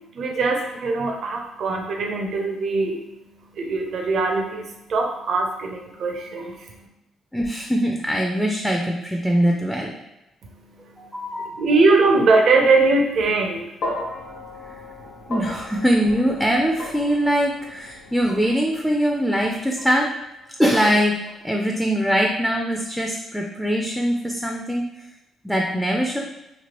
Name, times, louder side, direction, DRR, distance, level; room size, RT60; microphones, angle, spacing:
voice 1, 0.1-3.0 3.5-6.9 10.4-13.6, right 3 dB, 60° right, 2 dB, 0.5 m, -21 dB
voice 2, 7.3-9.9 11.0-11.5 15.3-20.1 20.6-21.2 21.4-24.9 25.4-26.2, equal, ahead, 0 dB, 0.4 m, -22 dB
sound 1, 13.8-22.1, left 2 dB, 70° left, 0.7 m, -37 dB
3.0 x 2.4 x 2.9 m, 0.92 s
cardioid pair, 90°, 0 cm